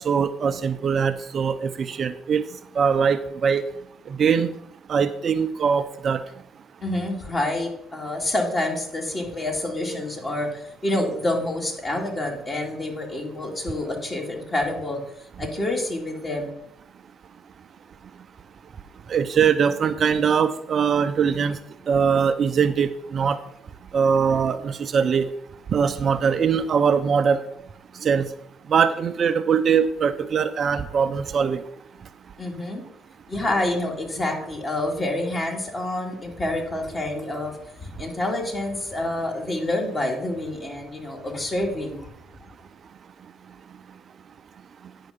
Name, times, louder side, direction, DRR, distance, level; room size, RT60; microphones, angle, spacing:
voice 1, 0.0-3.7 4.0-4.6 4.9-6.4 18.0-18.3 18.6-18.7 19.1-25.3 25.7-27.4 27.9-28.3 28.6-31.7 32.0-32.3 42.5-42.6 43.2-44.0 44.8-44.9, right 6 dB, 50° right, 10 dB, 0.5 m, -22 dB
voice 2, 6.8-15.0 15.4-16.6 32.4-32.8 33.3-42.1, left 1 dB, 35° left, 1 dB, 2.6 m, -27 dB
9.5 x 5.7 x 5.1 m, 0.74 s
supercardioid pair, 70°, 0 cm